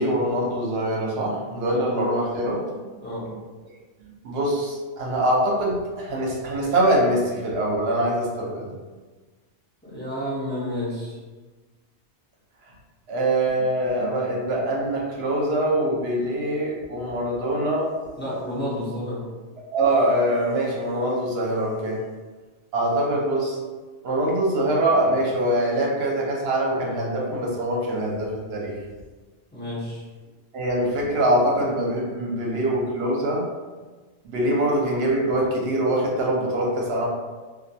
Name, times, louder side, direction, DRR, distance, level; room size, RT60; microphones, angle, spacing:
voice 1, 0.0-2.6 3.3-3.4 4.2-8.7 13.1-17.9 19.7-22.0 22.7-23.6 24.0-28.7 30.5-33.5 34.2-37.1, right 1 dB, 65° right, -3 dB, 0.8 m, -23 dB
voice 2, 9.8-11.2 18.2-19.2 29.5-30.0, equal, 15° left, -9 dB, 0.5 m, -30 dB
2.4 x 2.2 x 2.6 m, 1.3 s
omnidirectional pair, 1.2 m